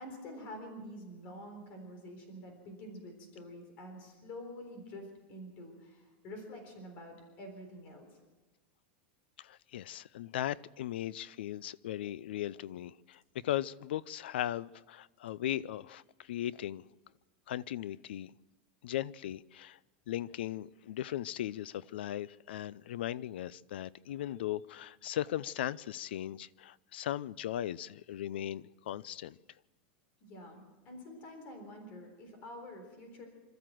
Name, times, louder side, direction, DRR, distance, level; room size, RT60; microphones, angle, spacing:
voice 1, 0.0-8.2 30.2-33.3, left 1 dB, 30° left, 3.8 m, -47 dB
voice 2, 9.4-16.9 17.5-18.3 18.8-19.8 20.1-29.4, left 12 dB, 85° left, 0.5 m, -38 dB
26.0 x 13.0 x 7.7 m
supercardioid pair, 175°, 5 cm